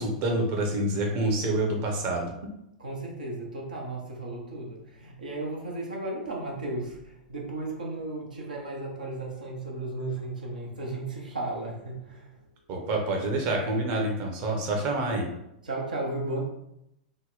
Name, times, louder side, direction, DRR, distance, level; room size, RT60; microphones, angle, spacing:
voice 1, 0.0-2.3 12.7-15.3, right 2 dB, 45° right, 1 dB, 0.8 m, -27 dB
voice 2, 2.8-12.4 15.6-16.4, right 2 dB, 75° right, -2 dB, 0.8 m, -35 dB
3.9 x 2.1 x 3.9 m, 0.82 s
figure-of-eight pair, 95°, 4 cm